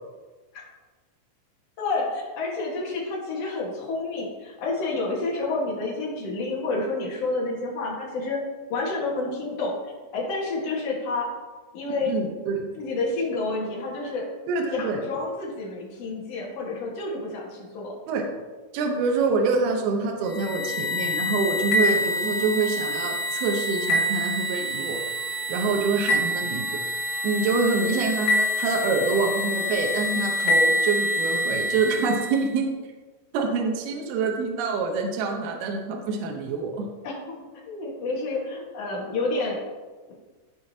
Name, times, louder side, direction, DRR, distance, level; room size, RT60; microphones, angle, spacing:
voice 1, 1.8-8.4 8.7-9.7 10.1-11.3 11.7-12.1 12.7-14.2 14.7-17.9 37.0-39.6, left 3 dB, 65° left, -3 dB, 1.6 m, -29 dB
voice 2, 11.9-12.6 14.5-15.0 18.1-18.2 18.7-25.0 25.5-26.8 27.2-32.7 33.3-36.9, right 4 dB, 75° right, 2 dB, 2.5 m, -26 dB
sound 1, 20.3-32.4, left 1 dB, 85° left, 3.8 m, -26 dB
15.0 x 5.1 x 2.8 m, 1.3 s
omnidirectional pair, 5.4 m